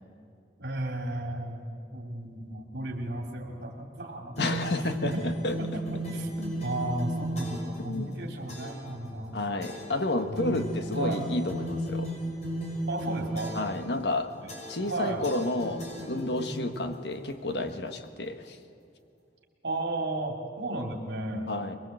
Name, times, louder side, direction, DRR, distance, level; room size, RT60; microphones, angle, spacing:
voice 1, 0.6-4.4 5.1-5.2 5.6-9.4 10.2-11.2 12.9-13.6 14.4-14.5 14.8-15.2 16.4-16.9 19.6-21.5, right 1 dB, 70° right, 2 dB, 2.7 m, -34 dB
voice 2, 4.4-5.6 7.8-8.3 9.3-12.2 13.5-14.3 14.7-18.6 21.5-21.8, left 2 dB, 65° left, 7 dB, 1.5 m, -31 dB
sound 1, 4.4-7.8 8.5-8.9 9.6-10.0 10.4-13.8 14.5-14.9 15.2-16.6, equal, 40° left, 6.1 m, -35 dB
22.5 x 22.0 x 7.8 m, 2.4 s
head